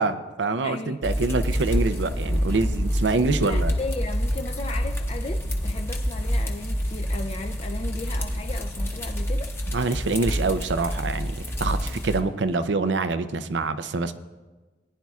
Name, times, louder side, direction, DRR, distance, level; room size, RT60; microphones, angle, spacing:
voice 1, 0.0-3.7 9.7-14.1, right 3 dB, 70° right, 11 dB, 0.6 m, -25 dB
voice 2, 0.6-1.2 3.4-9.5, left 2 dB, 35° left, 4 dB, 0.4 m, -36 dB
sound 1, 1.0-12.2, equal, 15° left, 0.9 m, -27 dB
18.5 x 10.5 x 2.4 m, 1.3 s
head